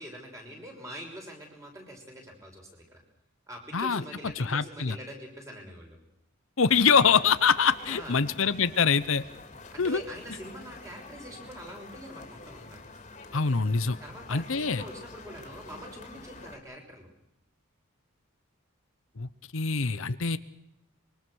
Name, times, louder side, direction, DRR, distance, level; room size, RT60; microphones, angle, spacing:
voice 1, 0.0-3.0 3.5-6.0 7.8-8.3 9.7-12.8 14.0-17.1, equal, 15° right, 2 dB, 6.0 m, -44 dB
voice 2, 3.7-4.0 4.4-5.0 6.6-9.2 9.8-10.0 13.3-14.0 14.3-14.8 19.2-20.4, left 5 dB, 65° left, 13 dB, 0.9 m, -24 dB
sound 1, 6.7-16.6, left 3 dB, 30° left, 3.2 m, -47 dB
25.5 x 23.5 x 6.4 m, 0.81 s
head